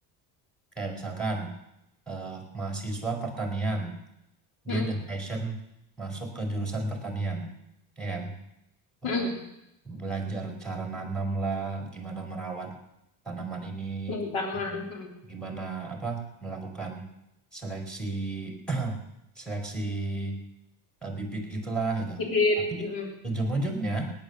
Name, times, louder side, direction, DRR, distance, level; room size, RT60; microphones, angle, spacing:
voice 1, 0.8-1.5 2.1-4.0 4.6-5.6 6.0-7.5 8.0-8.3 9.0-9.3 9.8-12.8 13.2-14.2 14.7-14.8 15.2-17.1 17.5-19.0 19.4-20.4 21.0-22.2 22.8-22.9 23.2-24.1, right 3 dB, ahead, 2 dB, 4.5 m, -32 dB
voice 2, 9.0-9.4 14.1-15.1 22.2-23.1, left 3 dB, 70° left, 2 dB, 3.6 m, -28 dB
18.0 x 9.8 x 7.3 m, 0.87 s
cardioid pair, 105°, 48 cm